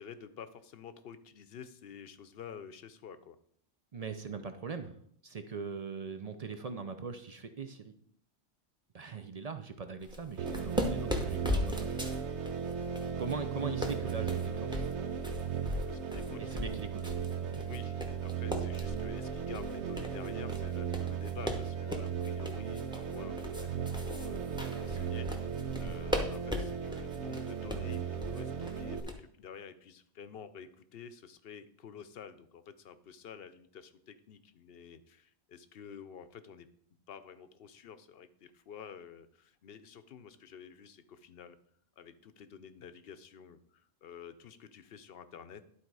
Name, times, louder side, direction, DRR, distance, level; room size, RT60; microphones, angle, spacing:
voice 1, 0.0-3.4 15.7-16.5 17.7-36.7 37.1-41.6 42.0-45.6, left 7 dB, 65° left, 11 dB, 0.8 m, -50 dB
voice 2, 3.9-4.9 5.2-7.9 8.9-12.0 13.2-14.9 16.4-17.1 17.4-17.6 25.8-26.0, right 5 dB, 45° right, 8 dB, 0.5 m, -41 dB
sound 1, 10.0-29.1, left 1 dB, 5° right, 0.9 m, -39 dB
sound 2, 10.4-29.0, right 7 dB, 80° right, 1.1 m, -36 dB
11.5 x 4.2 x 4.7 m, 0.64 s
omnidirectional pair, 1.2 m